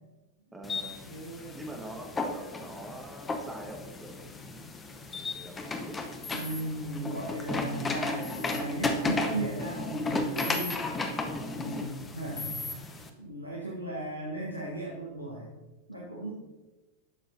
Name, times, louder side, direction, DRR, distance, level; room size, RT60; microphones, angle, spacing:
voice 1, 0.5-1.1 1.5-4.3 5.2-6.0 11.0-11.9, right 1 dB, 5° right, 1 dB, 1.4 m, -44 dB
sound 1, 0.6-13.1, left 2 dB, 15° left, 0.8 m, -34 dB
voice 2, 1.0-1.6 6.3-10.8 11.6-11.8 12.1-15.5 15.9-16.3, right 2 dB, 90° left, -4 dB, 1.3 m, -36 dB
sound 2, 6.2-6.6 8.2-8.6 10.4-10.8 12.4-12.7, left 3 dB, 50° left, 1.6 m, -38 dB
11.0 x 6.6 x 2.7 m, 1.1 s
figure-of-eight pair, 90°, 0 cm